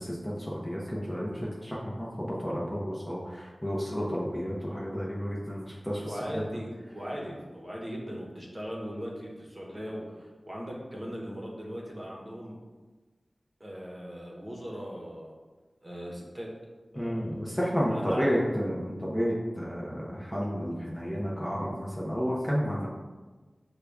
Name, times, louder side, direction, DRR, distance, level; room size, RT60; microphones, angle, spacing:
voice 1, 0.0-6.4 17.0-22.9, equal, 10° left, -5 dB, 0.8 m, -31 dB
voice 2, 6.0-12.6 13.6-15.3 15.8-16.5 16.9-18.3, equal, 25° right, -3 dB, 1.0 m, -39 dB
6.6 x 2.3 x 3.4 m, 1.3 s
wide cardioid pair, 75°, 0 cm